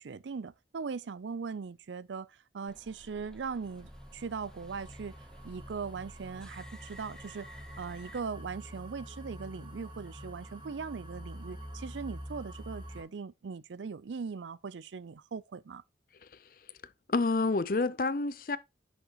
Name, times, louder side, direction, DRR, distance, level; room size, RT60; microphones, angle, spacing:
voice 1, 0.0-5.2 5.4-7.5 7.8-15.8, right 5 dB, 90° right, 0.5 m, -40 dB
sound 1, 2.7-8.2, equal, 5° left, 0.6 m, -54 dB
sound 2, 3.6-13.0, equal, 25° right, 1.6 m, -47 dB
voice 2, 16.2-16.7 17.1-18.6, left 3 dB, 50° left, 0.6 m, -29 dB
9.7 x 6.4 x 2.9 m
head